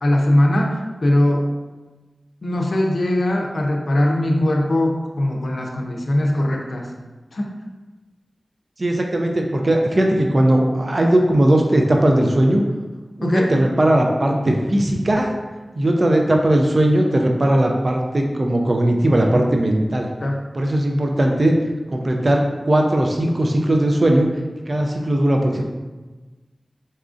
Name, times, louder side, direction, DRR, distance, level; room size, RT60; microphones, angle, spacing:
voice 1, 0.0-1.5 2.4-6.9 7.3-7.5 13.2-13.5 19.3-19.4 20.2-20.4 21.3-21.4, left 1 dB, 75° left, 0 dB, 0.4 m, -20 dB
voice 2, 8.8-12.7 13.2-15.3 15.7-20.1 20.5-21.6 21.9-24.3 24.7-25.6, right 1 dB, 50° right, 1 dB, 0.4 m, -18 dB
4.0 x 2.4 x 2.4 m, 1.2 s
cardioid pair, 45°, 0 cm